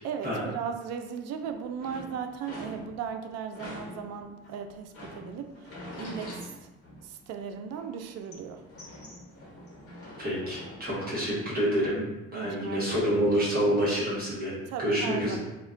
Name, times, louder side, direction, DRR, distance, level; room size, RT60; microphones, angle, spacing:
voice 1, 0.0-6.7 7.0-8.6 12.3-13.3 14.7-15.4, right 7 dB, 60° right, 6 dB, 0.4 m, -37 dB
sound 1, 1.4-3.2 3.5-7.4 7.7-10.8, left 1 dB, 50° left, 1.0 m, -45 dB
voice 2, 10.2-12.0 12.3-14.5 14.8-15.4, equal, 30° right, -6 dB, 0.9 m, -27 dB
2.4 x 2.1 x 3.7 m, 1.0 s
supercardioid pair, 85°, 30 cm